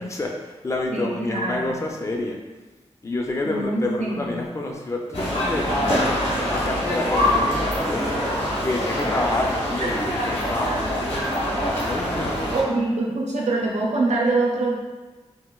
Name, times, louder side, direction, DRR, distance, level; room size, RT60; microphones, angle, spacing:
voice 1, 0.0-2.4 3.0-5.7 6.5-8.3 8.6-10.8 11.8-12.6, left 2 dB, 25° left, 1 dB, 0.4 m, -28 dB
voice 2, 0.9-1.7 3.4-4.4 12.5-14.7, right 2 dB, 85° right, -2 dB, 0.6 m, -24 dB
sound 1, 5.1-12.6, left 1 dB, 60° left, 1.1 m, -24 dB
4.1 x 2.2 x 2.2 m, 1.2 s
wide cardioid pair, 105°, 11 cm